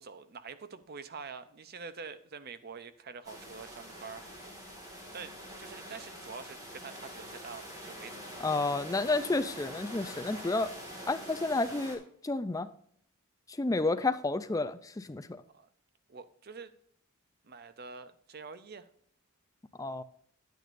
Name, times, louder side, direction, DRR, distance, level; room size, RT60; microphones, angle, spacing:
voice 1, 0.0-4.2 5.1-8.5 15.5-15.7 16.1-16.7 17.4-18.9, right 5 dB, 45° right, 0.6 m, -46 dB
sound 1, 3.2-12.0, equal, 15° right, 2.0 m, -45 dB
voice 2, 8.4-10.7 11.1-12.7 13.5-15.4 19.8-20.0, left 3 dB, 15° left, 0.4 m, -31 dB
9.9 x 9.2 x 2.6 m
head